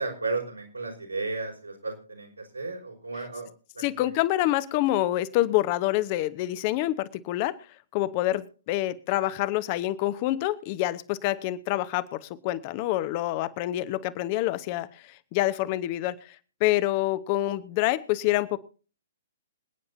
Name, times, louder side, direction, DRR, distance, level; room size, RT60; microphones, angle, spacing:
voice 1, 0.0-3.5 3.7-4.1, right 3 dB, 80° right, 0 dB, 5.1 m, -34 dB
voice 2, 3.8-7.5 7.9-16.3 16.6-18.6, left 15 dB, 35° left, 15 dB, 1.0 m, -27 dB
27.0 x 9.5 x 2.7 m, 0.38 s
figure-of-eight pair, 120°, 0 cm